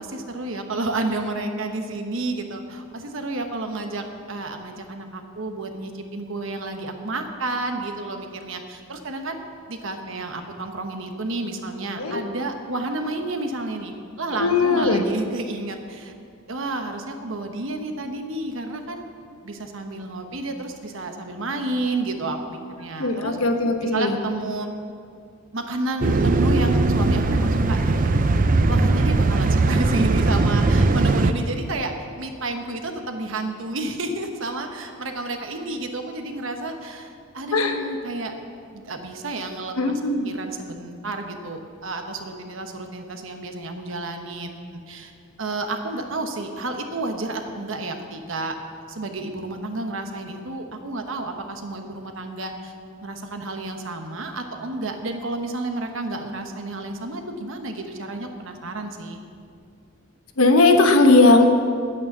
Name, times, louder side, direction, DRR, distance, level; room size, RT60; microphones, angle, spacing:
voice 1, 0.0-9.4 9.7-16.1 16.5-19.1 19.4-23.4 23.8-24.7 25.5-28.2 28.7-38.3 38.7-39.8 40.3-44.6 44.9-45.1 45.4-48.6 48.9-52.7 53.0-59.2, right 2 dB, 65° right, 5 dB, 1.1 m, -30 dB
voice 2, 14.3-15.1 23.0-24.2 28.8-29.1 37.5-37.8 39.8-40.3 60.4-61.5, left 3 dB, 80° left, 5 dB, 1.1 m, -18 dB
sound 1, 26.0-31.3, right 3 dB, 40° right, 0.5 m, -19 dB
9.3 x 8.7 x 7.2 m, 2.3 s
head